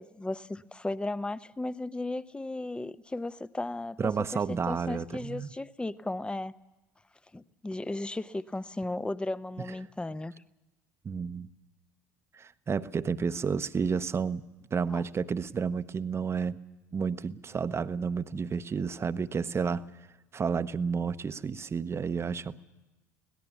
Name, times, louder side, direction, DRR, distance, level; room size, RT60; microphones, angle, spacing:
voice 1, 0.0-6.5 7.3-10.3 14.9-15.0, left 2 dB, 10° left, 15 dB, 0.8 m, -35 dB
voice 2, 4.0-5.5 11.0-11.5 12.3-14.4 14.7-16.6 16.9-19.8 20.3-22.6, right 6 dB, 30° right, 12 dB, 1.0 m, -31 dB
25.5 x 18.0 x 7.1 m, 1.1 s
figure-of-eight pair, 60°, 9 cm